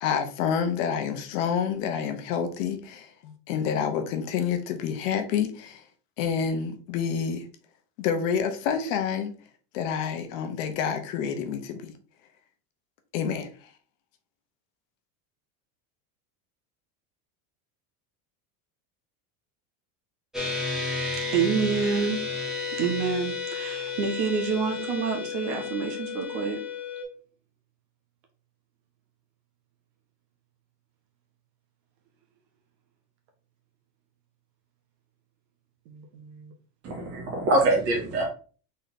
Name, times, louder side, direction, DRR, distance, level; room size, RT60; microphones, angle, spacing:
voice 1, 0.0-5.8 6.2-7.4 8.0-9.3 9.7-11.9 13.1-13.5, left 7 dB, 60° left, 0.9 m, -28 dB
sound 1, 20.3-27.0, left 4 dB, ahead, 0.7 m, -32 dB
voice 2, 21.3-22.5 22.8-26.6 35.9-36.5, right 6 dB, 50° right, 1.3 m, -28 dB
voice 3, 36.8-38.2, right 2 dB, 30° right, 1.9 m, -24 dB
3.9 x 3.3 x 4.1 m
cardioid pair, 170°, 44 cm